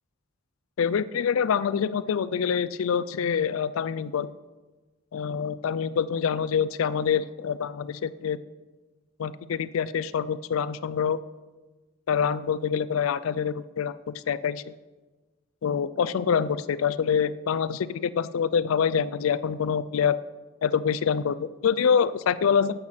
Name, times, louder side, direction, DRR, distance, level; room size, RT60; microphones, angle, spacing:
voice 1, 0.8-4.3 5.1-8.4 9.2-11.2 12.1-14.7 15.6-20.2 20.6-22.8, left 7 dB, 80° left, 16 dB, 0.4 m, -26 dB
10.5 x 7.9 x 5.7 m, 1.2 s
head